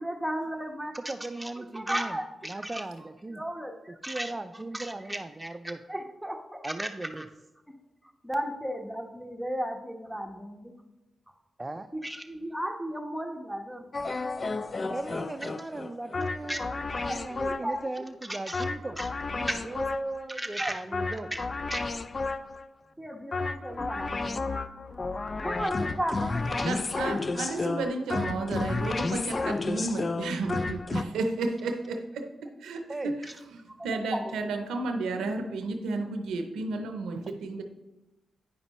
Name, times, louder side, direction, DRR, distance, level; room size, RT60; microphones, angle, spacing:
voice 1, 0.0-1.0 1.4-2.8 3.3-4.3 4.7-6.9 7.2-7.3 8.2-10.7 11.9-13.9 15.4-15.5 16.5-16.6 16.9-18.6 19.0-19.1 19.5-19.6 20.3-21.4 21.7-21.8 23.0-24.7 25.4-26.7 33.2-33.3 33.7-34.5, right 1 dB, 5° right, 2 dB, 1.2 m, -35 dB
voice 2, 1.1-2.2 2.4-3.4 3.9-5.8 6.6-7.2 11.6-11.9 14.5-16.8 17.1-19.0 19.3-21.3 32.9-33.1, right 2 dB, 25° right, 7 dB, 0.4 m, -38 dB
sound 1, 13.9-17.9 18.5-20.3 20.9-22.7 23.3-31.0, left 3 dB, 45° left, 0.4 m, -32 dB
voice 3, 26.6-37.6, right 3 dB, 90° right, 5 dB, 0.6 m, -32 dB
9.7 x 5.2 x 3.0 m, 1.0 s
supercardioid pair, 45°, 0 cm